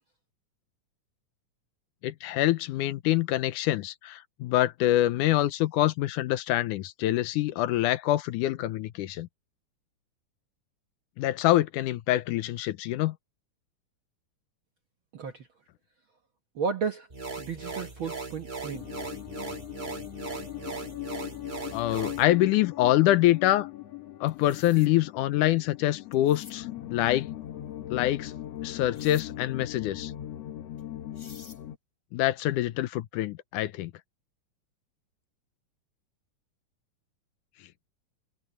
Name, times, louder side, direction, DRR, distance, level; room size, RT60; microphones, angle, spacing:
voice 1, 2.0-9.3 11.2-13.2 21.7-23.7 24.2-26.7 26.9-27.3 27.9-28.3 28.6-30.1 32.1-33.9, left 14 dB, 80° left, 2.2 m, -25 dB
voice 2, 15.1-15.5 16.5-17.1 17.4-18.9, right 5 dB, 60° right, 1.3 m, -33 dB
sound 1, 17.1-22.2, right 3 dB, 35° right, 0.8 m, -38 dB
sound 2, 18.7-31.8, left 13 dB, 60° left, 1.9 m, -40 dB
sound 3, 24.3-24.9 26.1-26.6 28.9-29.3 30.8-30.9 31.1-31.6, left 4 dB, 30° left, 3.3 m, -51 dB
omnidirectional pair, 3.7 m